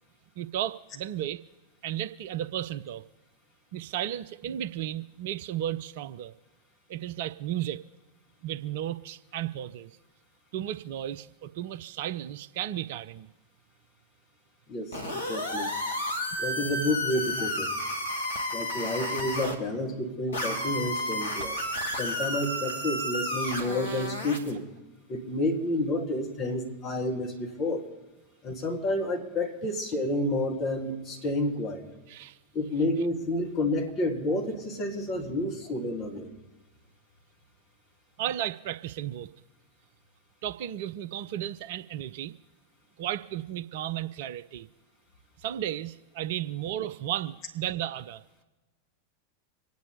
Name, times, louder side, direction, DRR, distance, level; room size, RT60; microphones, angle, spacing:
voice 1, 0.4-1.4 1.8-3.0 3.7-6.3 6.9-7.8 8.4-10.0 10.5-13.3 17.4-17.5 23.4-24.1 26.0-26.1 32.1-32.4 38.2-39.3 40.4-42.3 43.0-44.7 45.4-48.2, right 11 dB, 50° right, 14 dB, 0.5 m, -34 dB
voice 2, 14.7-15.7 16.4-17.7 18.5-21.6 21.9-24.6 25.1-27.9 28.4-31.8 32.5-36.3, left 1 dB, 35° left, 0 dB, 2.7 m, -30 dB
sound 1, 14.9-19.5 20.3-24.5, left 1 dB, 75° left, 2.1 m, -32 dB
26.0 x 9.4 x 4.1 m, 1.1 s
figure-of-eight pair, 90°, 0 cm